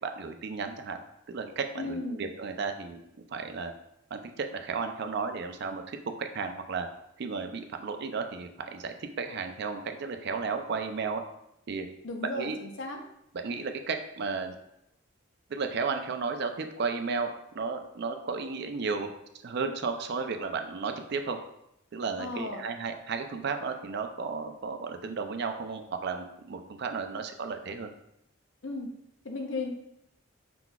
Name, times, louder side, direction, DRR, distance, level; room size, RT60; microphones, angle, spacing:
voice 1, 0.0-1.0 1.3-3.0 3.3-3.7 4.1-6.9 7.2-11.2 11.7-11.9 12.3-12.6 13.3-14.6 15.5-19.1 19.4-21.4 21.9-27.9, right 4 dB, 55° right, 6 dB, 0.4 m, -33 dB
voice 2, 1.8-2.2 12.0-13.0 22.2-22.6 28.6-28.9 29.2-29.7, left 2 dB, 65° left, 2 dB, 0.7 m, -35 dB
5.7 x 3.9 x 2.3 m, 0.80 s
head